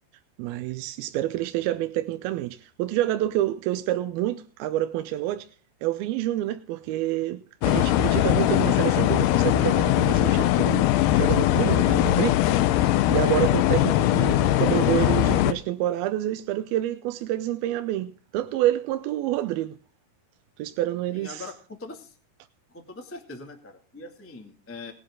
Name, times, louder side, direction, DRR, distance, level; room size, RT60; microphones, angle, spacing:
voice 1, 0.4-5.5 5.8-10.9 11.1-12.8 13.1-19.8 20.6-21.5, right 14 dB, 80° right, 2.3 m, -28 dB
sound 1, 7.6-15.5, left 14 dB, 80° left, 2.7 m, -21 dB
voice 2, 21.1-22.1 22.7-24.9, left 3 dB, 10° left, 0.7 m, -42 dB
19.0 x 9.9 x 3.7 m
omnidirectional pair, 4.8 m